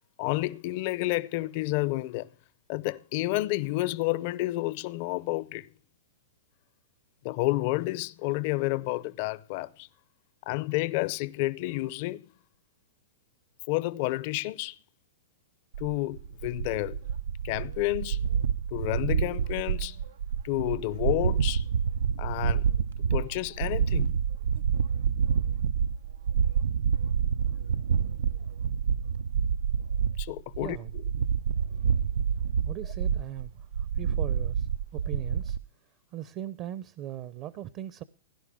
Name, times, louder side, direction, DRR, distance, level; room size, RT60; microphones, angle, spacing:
voice 1, 0.2-2.3 2.7-5.7 7.2-9.9 10.5-12.3 13.7-14.8 15.8-17.0 17.4-18.2 18.7-20.0 20.4-21.7 22.2-22.7 23.1-24.1 30.2-30.8, left 19 dB, 45° left, 0.6 m, -30 dB
sound 1, 15.7-35.6, right 7 dB, 85° right, 0.5 m, -28 dB
voice 2, 30.6-30.9 32.6-38.0, right 11 dB, 35° right, 0.7 m, -40 dB
17.0 x 11.0 x 3.6 m
hypercardioid pair, 145°, 0 cm